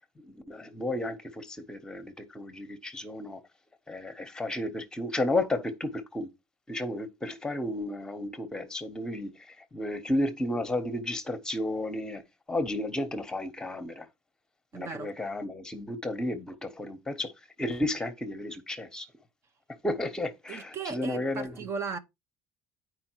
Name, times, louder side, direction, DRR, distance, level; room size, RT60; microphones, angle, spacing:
voice 1, 0.3-3.4 3.9-6.3 6.7-12.2 12.5-14.1 14.7-17.3 17.6-19.1 19.8-21.6, left 1 dB, 10° left, 1.1 m, -33 dB
voice 2, 14.7-15.1 20.5-22.0, right 5 dB, 35° right, 0.8 m, -36 dB
9.4 x 4.9 x 4.6 m
cardioid pair, 150°, 7 cm